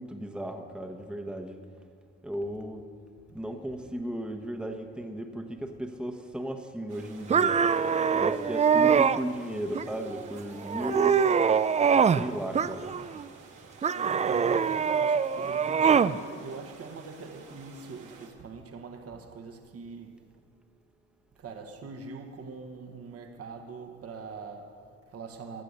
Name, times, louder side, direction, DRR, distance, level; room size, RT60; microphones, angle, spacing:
voice 1, 0.0-1.6 2.2-2.9 3.3-7.6 8.1-11.2 12.1-12.9, right 1 dB, 5° right, 1.0 m, -35 dB
sound 1, 6.9-18.3, right 5 dB, 85° right, 1.8 m, -52 dB
sound 2, 7.3-9.2 9.7-10.3 10.7-12.3 12.5-13.2 13.8-16.2, right 6 dB, 25° right, 0.3 m, -24 dB
voice 2, 13.9-20.3 21.4-25.6, right 4 dB, 50° right, 1.3 m, -43 dB
15.5 x 9.7 x 6.5 m
cardioid pair, 90°, 30 cm